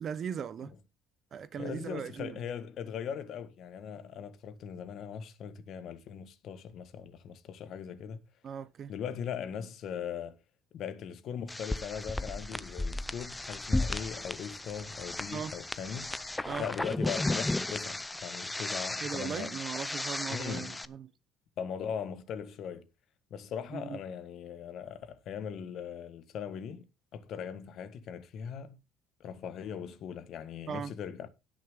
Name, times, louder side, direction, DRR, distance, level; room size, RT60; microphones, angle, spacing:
voice 1, 0.0-0.7 1.3-2.4 8.4-8.9 15.3-15.5 16.4-16.7 19.0-21.1 23.7-24.0 30.7-30.9, right 7 dB, 40° right, 0.8 m, -38 dB
voice 2, 1.6-8.2 8.9-10.4 10.7-16.1 16.6-19.6 20.3-20.8 21.6-22.8 23.3-26.8 27.1-28.8 29.2-31.3, left 7 dB, 50° left, 1.5 m, -39 dB
sound 1, 11.5-20.8, left 2 dB, 10° left, 0.5 m, -35 dB
17.5 x 6.4 x 3.7 m
cardioid pair, 155°, 0 cm